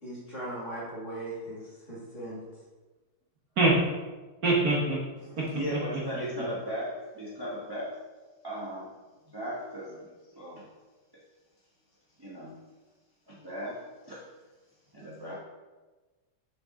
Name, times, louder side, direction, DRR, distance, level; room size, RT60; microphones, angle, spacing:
voice 1, 0.0-2.4, right 1 dB, 35° left, -6 dB, 2.6 m, -39 dB
voice 2, 4.4-5.0 5.4-6.0, right 2 dB, 50° right, -5 dB, 1.6 m, -25 dB
voice 3, 5.2-8.0 8.4-9.0 9.3-10.1 10.3-10.6 11.1-11.2 12.2-12.6 13.3-14.2 14.9-15.3, equal, 15° right, -7 dB, 1.1 m, -37 dB
7.1 x 6.0 x 3.8 m, 1.2 s
omnidirectional pair, 2.3 m